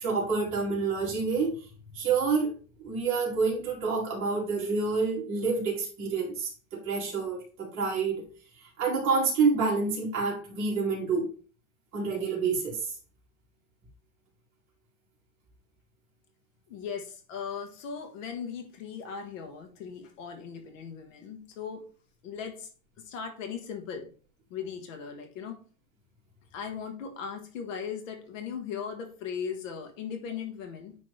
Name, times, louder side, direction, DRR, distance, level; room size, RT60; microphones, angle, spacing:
voice 1, 0.0-1.5 1.9-2.5 2.8-8.3 8.6-11.3 11.9-12.9, right 4 dB, 30° right, -4 dB, 2.8 m, -28 dB
voice 2, 16.7-21.9 22.2-22.7 23.0-24.1 24.5-25.6 26.5-31.0, left 7 dB, 65° left, 5 dB, 1.6 m, -38 dB
9.8 x 3.3 x 3.4 m, 0.39 s
supercardioid pair, 165°, 41 cm